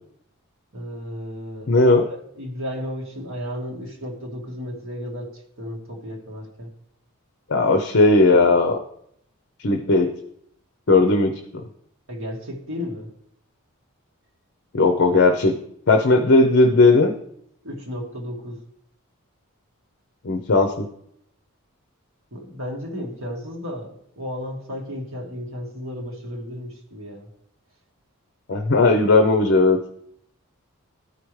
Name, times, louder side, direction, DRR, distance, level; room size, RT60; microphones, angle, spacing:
voice 1, 0.7-2.0 2.4-6.7 12.1-13.1 17.6-18.6 22.3-27.3, equal, 65° right, -1 dB, 1.7 m, -33 dB
voice 2, 1.7-2.1 7.5-8.8 9.6-10.1 10.9-11.3 14.7-15.6 15.9-17.1 20.2-20.9 28.5-29.8, left 3 dB, 55° left, 5 dB, 0.6 m, -17 dB
13.0 x 4.9 x 3.1 m, 0.71 s
head